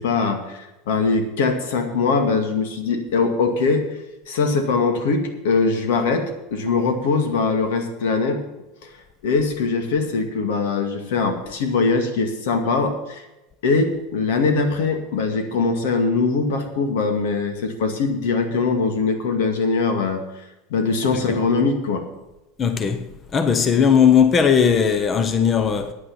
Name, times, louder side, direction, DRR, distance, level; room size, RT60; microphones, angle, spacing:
voice 1, 0.0-3.9 4.3-8.4 8.8-8.9 9.2-13.2 13.6-20.2 20.7-22.1, left 4 dB, 80° left, 2.1 m, -22 dB
voice 2, 22.6-23.1 23.3-25.9, left 7 dB, 25° left, 0.8 m, -18 dB
9.5 x 9.2 x 7.1 m
supercardioid pair, 145°, 0 cm